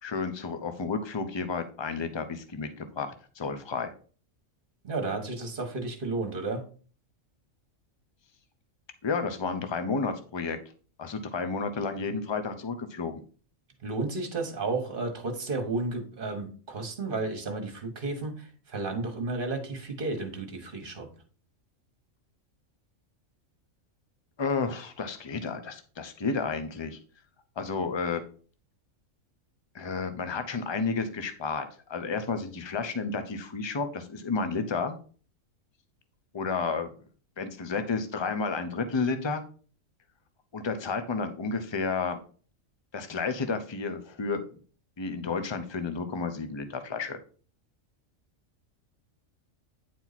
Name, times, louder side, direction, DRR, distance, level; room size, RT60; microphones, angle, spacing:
voice 1, 0.0-3.9 9.0-10.6 11.0-13.2 24.4-27.0 27.6-28.2 29.7-34.9 36.3-36.9 37.4-39.4 40.5-42.2 42.9-44.4 45.0-47.2, left 4 dB, 25° left, 9 dB, 0.7 m, -31 dB
voice 2, 4.8-6.6 13.8-21.1, right 3 dB, 40° right, 6 dB, 1.5 m, -32 dB
9.3 x 4.5 x 4.1 m, 0.40 s
omnidirectional pair, 1.4 m